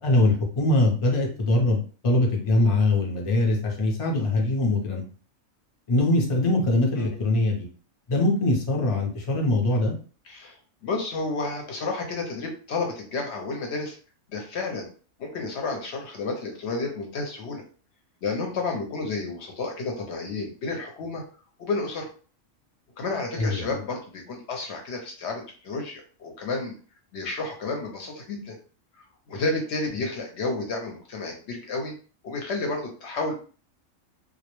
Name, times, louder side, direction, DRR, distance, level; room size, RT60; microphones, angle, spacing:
voice 1, 0.0-5.0 5.9-7.7 8.1-9.9 23.4-23.6, left 2 dB, 45° left, 0 dB, 0.4 m, -22 dB
voice 2, 10.2-14.0 14.3-14.9 15.2-17.6 18.2-21.2 21.6-22.1 23.0-26.7 27.1-28.6 29.0-31.9 32.2-33.3, left 3 dB, 65° left, 2 dB, 0.8 m, -31 dB
2.2 x 2.0 x 2.9 m, 0.39 s
omnidirectional pair, 1.3 m